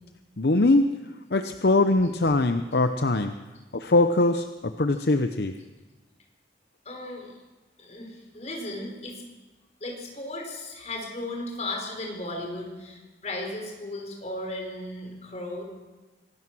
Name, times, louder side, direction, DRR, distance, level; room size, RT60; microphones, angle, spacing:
voice 1, 0.4-0.9 1.3-3.3 3.7-5.5, left 2 dB, 65° left, 8 dB, 0.8 m, -22 dB
voice 2, 6.8-7.3 7.8-9.2 9.8-15.6, left 1 dB, 40° left, 1 dB, 5.1 m, -36 dB
25.0 x 17.0 x 6.2 m, 1.2 s
head